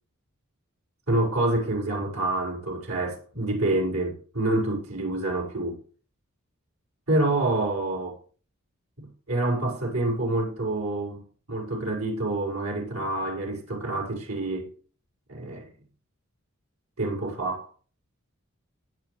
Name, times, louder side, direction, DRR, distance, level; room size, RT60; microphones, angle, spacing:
voice 1, 1.1-5.8 7.1-8.2 9.0-14.7 15.3-15.7 17.0-17.7, right 2 dB, 80° right, 5.3 m, -27 dB
17.0 x 9.6 x 3.3 m
head